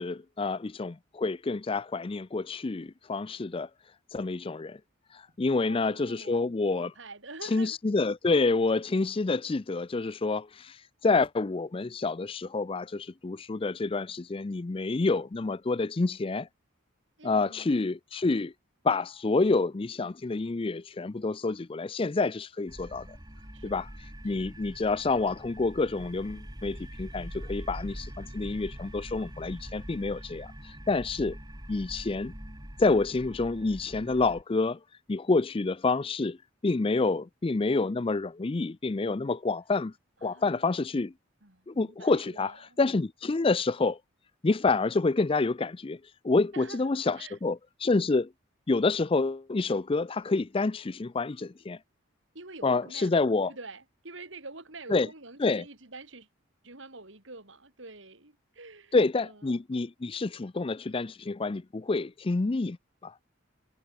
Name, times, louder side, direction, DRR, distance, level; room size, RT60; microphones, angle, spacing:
voice 1, 0.0-3.7 4.1-4.8 5.1-6.9 7.4-16.5 17.2-18.5 18.8-23.1 23.6-23.9 24.2-31.4 31.7-32.3 32.8-34.8 35.1-36.4 36.6-39.9 40.2-41.1 41.7-44.0 44.4-46.0 46.2-48.3 48.7-51.8 52.6-53.5 54.9-55.1 55.4-55.6 58.9-62.8 63.0-63.2, left 3 dB, 25° left, 0.4 m, -28 dB
voice 2, 5.6-7.8 17.2-17.9 23.5-23.7 24.3-24.5 40.2-41.1 41.4-42.8 46.5-46.9 47.2-47.4 52.3-56.3 56.6-59.5, right 3 dB, 65° right, 3.9 m, -47 dB
sound 1, 22.7-34.4, equal, 20° right, 6.2 m, -43 dB
head